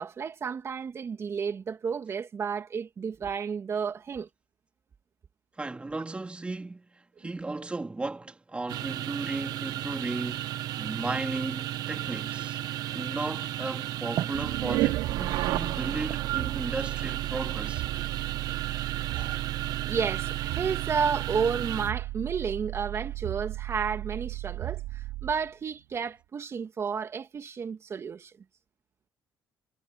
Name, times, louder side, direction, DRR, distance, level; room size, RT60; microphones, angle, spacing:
voice 1, 0.0-4.3 19.8-28.3, right 6 dB, 40° right, 2.6 m, -32 dB
voice 2, 5.6-12.6 12.9-17.8 19.1-19.4, right 2 dB, 15° right, 2.9 m, -35 dB
sound 1, 8.7-21.9, right 13 dB, 65° right, 0.9 m, -34 dB
sound 2, 14.3-25.5, right 18 dB, 85° right, 4.4 m, -33 dB
cardioid pair, 95°, 7 cm